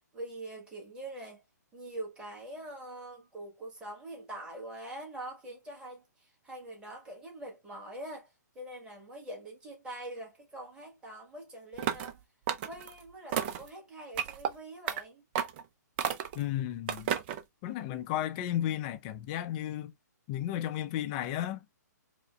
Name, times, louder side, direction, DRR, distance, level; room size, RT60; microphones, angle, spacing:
voice 1, 0.1-1.4 1.7-12.2 12.6-15.2, right 1 dB, 10° right, 1.5 m, -44 dB
sound 1, 11.8-12.1 12.5-12.9 13.3-13.7 14.2-14.5 14.9-15.0 15.3-15.6 16.0-16.4 16.9-17.4, right 9 dB, 35° right, 0.5 m, -32 dB
voice 2, 16.3-17.1 17.6-19.9 20.3-21.6, left 12 dB, 30° left, 0.5 m, -33 dB
4.7 x 2.1 x 2.3 m
figure-of-eight pair, 125°, 10 cm